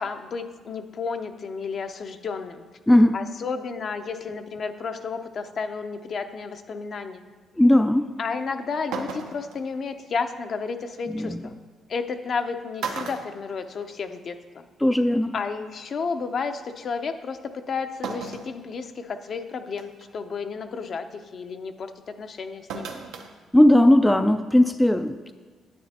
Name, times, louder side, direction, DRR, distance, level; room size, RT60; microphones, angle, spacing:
voice 1, 0.0-2.6 3.1-7.3 8.2-11.5 11.9-14.7 15.3-21.0 21.3-21.9 22.2-23.0, left 5 dB, 50° left, 7 dB, 0.6 m, -32 dB
voice 2, 2.9-3.2 7.6-8.1 11.1-11.4 14.8-15.3 23.5-25.3, left 1 dB, 10° left, 8 dB, 0.3 m, -18 dB
sound 1, 8.4-8.5 8.9-9.6 11.2-11.3 12.3-12.4 12.8-14.2 14.5-14.6 15.8-15.9 18.0-18.5 19.1-19.2 19.8-20.1 22.7-23.3 23.6-23.7, right 5 dB, 90° right, 0.8 m, -34 dB
10.0 x 8.6 x 2.9 m, 1.5 s
cardioid pair, 90°, 0 cm